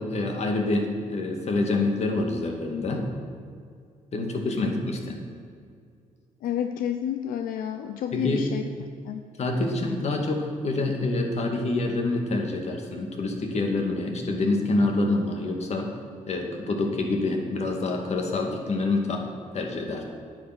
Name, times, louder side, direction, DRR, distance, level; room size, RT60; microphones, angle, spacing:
voice 1, 0.0-3.1 4.1-5.2 8.1-8.5 9.4-15.9 16.3-19.3 19.5-20.0, left 2 dB, 50° left, 3 dB, 2.1 m, -26 dB
voice 2, 6.4-8.6 9.1-9.2, left 9 dB, 85° left, 7 dB, 0.6 m, -29 dB
10.0 x 9.5 x 6.0 m, 2.3 s
cardioid pair, 95°, 14 cm